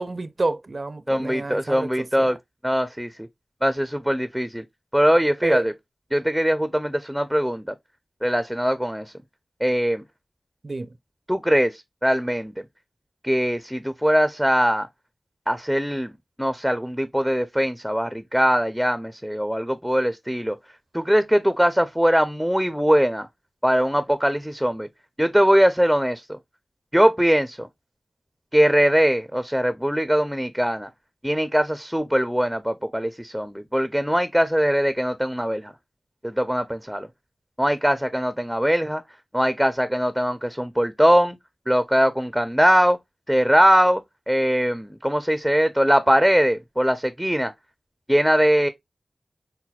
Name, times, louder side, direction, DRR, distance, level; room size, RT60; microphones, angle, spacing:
voice 1, 0.0-2.3 5.4-5.7 10.6-10.9, right 2 dB, 50° right, 0.5 m, -29 dB
voice 2, 1.1-2.4 2.6-3.1 3.6-4.6 4.9-5.7 6.1-7.7 8.2-9.1 9.6-10.0 11.3-12.5 13.2-14.9 15.5-16.1 16.4-20.6 20.9-23.3 23.6-24.9 25.2-26.2 26.9-27.7 28.5-30.9 31.2-35.7 36.2-37.1 37.6-39.0 39.3-41.4 41.7-43.0 43.3-44.0 44.3-47.5 48.1-48.7, equal, ahead, 0.5 m, -21 dB
5.7 x 2.1 x 2.3 m
cardioid pair, 40°, 0 cm